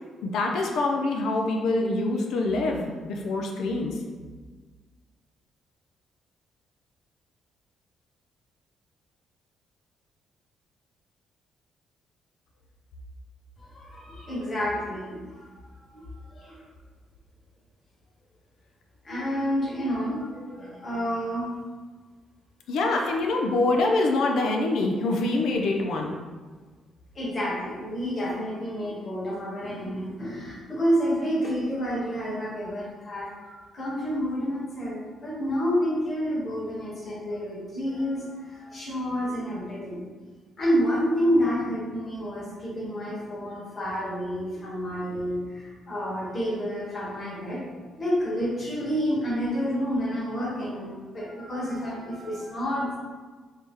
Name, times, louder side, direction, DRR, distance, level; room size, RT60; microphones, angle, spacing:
voice 1, 0.2-3.9 22.7-26.2, left 2 dB, 75° left, 1 dB, 0.4 m, -25 dB
voice 2, 13.6-15.5 15.8-16.1 16.3-16.6 19.0-21.5 27.1-40.0 40.6-47.6 48.0-53.0, equal, 40° left, -5 dB, 1.3 m, -29 dB
3.2 x 2.7 x 3.6 m, 1.4 s
cardioid pair, 90°, 0 cm